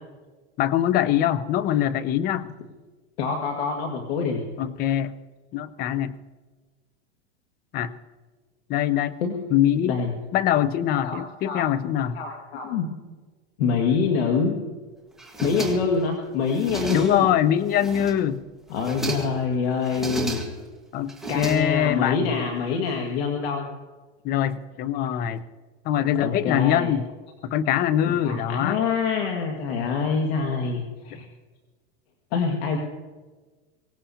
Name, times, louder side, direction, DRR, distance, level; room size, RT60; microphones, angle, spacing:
voice 1, 0.6-2.5 4.6-5.1 5.5-6.2 7.7-7.9 8.7-9.1 9.5-10.0 10.3-12.2 16.9-18.4 20.9-22.3 24.2-25.4 25.8-27.1 27.4-28.8, left 10 dB, 30° left, 15 dB, 0.6 m, -23 dB
voice 2, 3.2-4.4 9.2-9.3 9.8-10.1 11.0-11.6 12.2-12.9 13.6-14.6 15.4-17.3 18.7-20.4 21.3-23.7 26.1-26.9 28.1-31.3 32.3-32.8, left 5 dB, 70° left, 2 dB, 2.0 m, -25 dB
sound 1, 15.2-16.1 16.4-17.3 17.7-18.3 18.7-19.4 19.8-20.7 21.1-22.1, right 2 dB, ahead, 1.5 m, -33 dB
24.0 x 18.0 x 2.8 m, 1.3 s
supercardioid pair, 145°, 33 cm